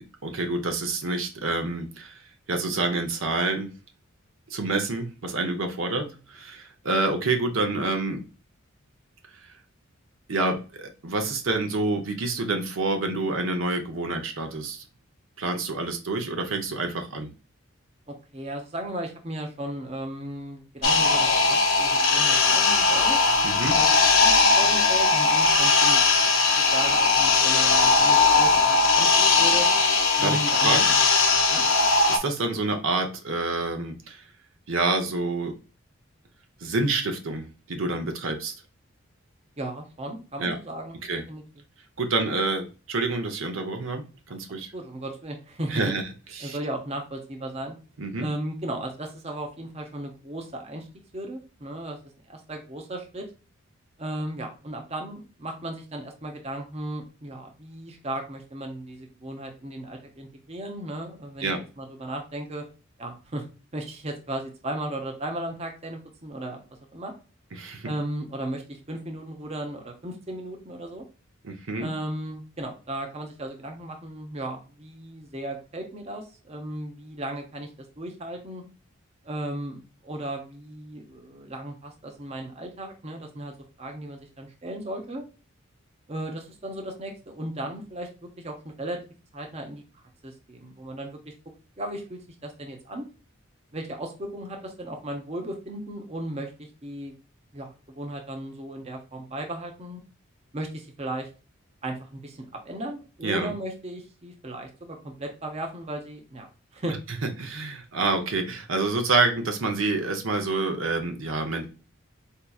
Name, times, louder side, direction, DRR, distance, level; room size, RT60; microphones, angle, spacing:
voice 1, 0.0-3.7 4.5-8.2 10.3-14.8 15.4-17.3 23.4-23.8 30.2-30.9 32.1-34.2 34.7-35.5 36.6-38.5 40.4-40.5 41.0-41.2 42.0-44.0 44.3-44.7 45.7-46.0 46.3-46.6 48.0-48.3 61.4-61.6 67.5-67.9 71.4-71.9 103.2-103.5 107.4-111.7, right 3 dB, 70° right, 5 dB, 0.7 m, -27 dB
voice 2, 18.1-23.2 23.7-23.9 24.1-26.3 26.6-29.1 29.4-29.7 30.2-31.1 31.5-31.6 39.6-41.0 41.3-41.4 44.5-45.9 46.4-47.8 48.2-50.9 51.1-52.0 52.3-53.3 54.0-61.5 61.8-62.7 63.0-63.4 63.7-66.6 66.9-67.1 67.8-71.0 71.8-77.7 78.0-78.6 79.2-83.5 83.8-85.2 86.1-88.1 88.4-89.0 89.3-89.8 90.2-91.3 91.8-93.1 93.7-97.1 97.5-100.0 100.5-101.3 101.8-106.5 106.7-107.0, right 1 dB, 30° right, 3 dB, 0.7 m, -35 dB
sound 1, 20.8-32.2, left 4 dB, 65° left, 0.8 m, -19 dB
4.6 x 2.8 x 2.3 m, 0.34 s
head